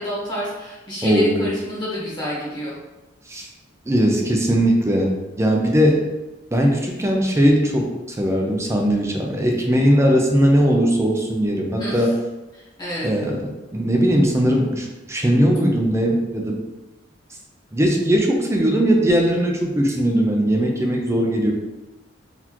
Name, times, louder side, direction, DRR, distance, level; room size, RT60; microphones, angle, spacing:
voice 1, 0.0-2.8 11.8-12.1 12.8-13.1, equal, 25° left, -7 dB, 1.2 m, -28 dB
voice 2, 1.0-1.4 3.3-3.5 3.9-6.1 6.5-12.1 13.0-16.6 17.7-21.5, equal, 15° right, 1 dB, 0.5 m, -19 dB
4.1 x 2.8 x 2.9 m, 1.1 s
head